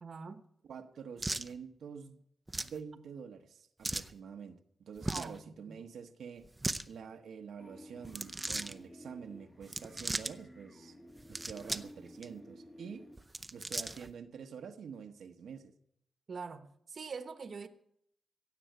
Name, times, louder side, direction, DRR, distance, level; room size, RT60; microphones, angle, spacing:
voice 1, 0.0-0.4 5.1-5.8 16.3-17.7, right 5 dB, 50° right, 1.1 m, -44 dB
voice 2, 0.6-2.2 2.6-6.5 6.8-11.0 11.3-13.1 13.5-15.7, right 6 dB, 85° right, 1.0 m, -47 dB
sound 1, 1.2-1.5 2.5-2.8 3.8-4.1 5.0-5.4 6.4-6.8 8.0-8.7 9.6-10.3 11.2-11.9 12.2-12.3 13.2-14.1, right 2 dB, 15° right, 0.7 m, -37 dB
sound 2, 7.6-13.2, equal, 15° left, 1.7 m, -54 dB
16.5 x 7.8 x 9.3 m
wide cardioid pair, 105°, 0 cm